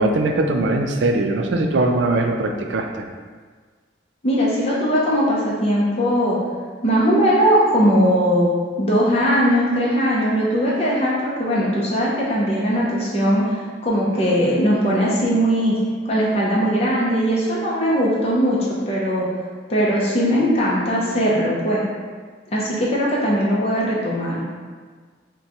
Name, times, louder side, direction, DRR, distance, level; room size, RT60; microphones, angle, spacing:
voice 1, 0.0-3.0, right 2 dB, 80° right, 3 dB, 0.4 m, -20 dB
voice 2, 4.2-6.4 6.8-8.5 8.8-15.8 16.0-18.6 18.9-19.3 19.7-21.8 22.5-24.4, equal, 35° left, -6 dB, 0.6 m, -19 dB
5.5 x 2.2 x 2.9 m, 1.5 s
head